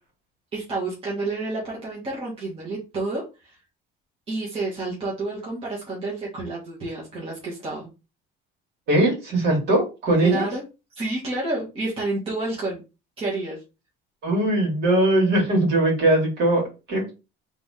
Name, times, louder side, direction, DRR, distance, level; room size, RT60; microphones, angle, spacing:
voice 1, 0.5-3.6 4.3-7.9 10.2-10.6 11.0-12.8 13.2-13.6, right 2 dB, 30° right, -5 dB, 1.9 m, -29 dB
voice 2, 8.9-10.5 14.2-17.1, right 1 dB, 55° right, -1 dB, 2.7 m, -20 dB
3.8 x 3.5 x 3.7 m, 0.28 s
cardioid pair, 165°, 20 cm